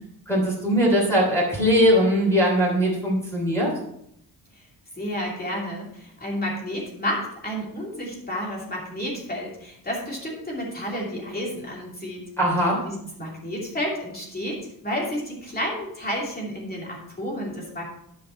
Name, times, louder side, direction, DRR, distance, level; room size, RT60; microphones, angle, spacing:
voice 1, 0.3-3.7 12.4-12.8, equal, 5° left, -4 dB, 3.2 m, -20 dB
voice 2, 5.0-12.2 12.8-17.9, equal, 25° left, -3 dB, 2.7 m, -31 dB
11.5 x 5.5 x 4.5 m, 0.74 s
wide cardioid pair, 165°, 40 cm